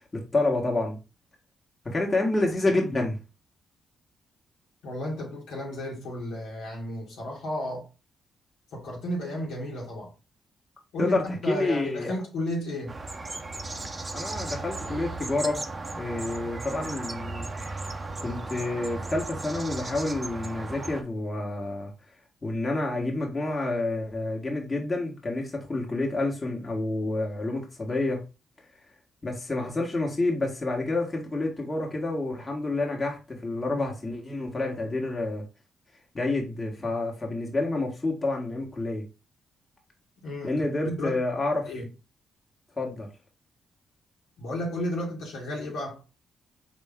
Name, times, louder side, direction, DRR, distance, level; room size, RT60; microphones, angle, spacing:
voice 1, 0.1-1.0 1.8-3.2 11.0-12.1 14.1-15.6 15.9-17.5 18.2-21.9 22.4-28.2 29.2-35.4 36.1-39.0 40.4-41.7 42.8-43.1, left 2 dB, 30° left, 1.6 m, -28 dB
voice 2, 4.8-7.9 8.7-10.1 10.9-12.9 40.2-41.1 41.6-41.9 44.4-46.0, left 1 dB, 80° left, 2.0 m, -33 dB
sound 1, 12.9-21.0, right 2 dB, 30° right, 0.7 m, -36 dB
4.5 x 3.0 x 3.6 m
supercardioid pair, 50°, 0 cm